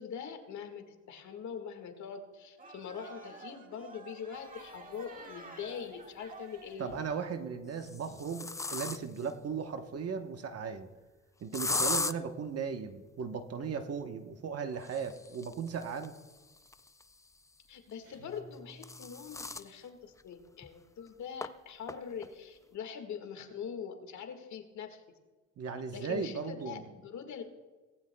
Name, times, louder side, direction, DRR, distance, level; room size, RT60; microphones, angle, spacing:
voice 1, 0.0-6.9 17.7-25.0 25.9-27.4, left 7 dB, 70° left, 6 dB, 1.8 m, -43 dB
sound 1, 2.6-7.1, right 3 dB, 25° right, 1.8 m, -51 dB
sound 2, 5.2-5.3 6.7-7.1 7.7-9.3 11.5-12.1 14.7-17.4 18.4-19.7 20.2-20.3 20.6-20.7 21.4-21.5 21.9-22.3, left 3 dB, 10° left, 0.3 m, -37 dB
voice 2, 6.8-10.9 11.4-16.1 25.6-26.8, right 6 dB, 55° right, 6 dB, 1.1 m, -37 dB
sound 3, 18.0-19.8, equal, 85° right, 3.4 m, -56 dB
18.5 x 15.0 x 2.3 m, 1.3 s
cardioid pair, 90°, 30 cm